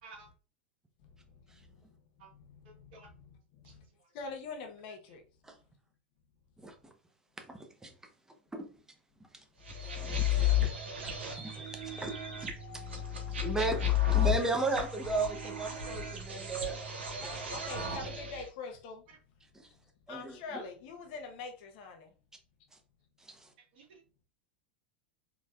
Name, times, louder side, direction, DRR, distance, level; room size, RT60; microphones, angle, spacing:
voice 1, 2.7-3.1 3.6-3.7 17.2-17.7 23.6-24.0, right 3 dB, 60° right, 1.8 m, -52 dB
voice 2, 4.1-5.2 10.1-10.6 14.0-14.4 17.7-19.0 20.1-22.0, left 4 dB, 55° left, 1.1 m, -43 dB
voice 3, 6.6-6.9 7.5-7.9 8.5-8.7 10.0-10.2 11.0-12.1 12.4-12.8 13.4-16.8 19.6-19.7 20.1-20.4 23.2-23.5, right 3 dB, 10° right, 1.0 m, -35 dB
sound 1, 9.7-18.5, left 8 dB, 80° right, 1.1 m, -33 dB
4.3 x 3.5 x 2.5 m
hypercardioid pair, 90°, 6 cm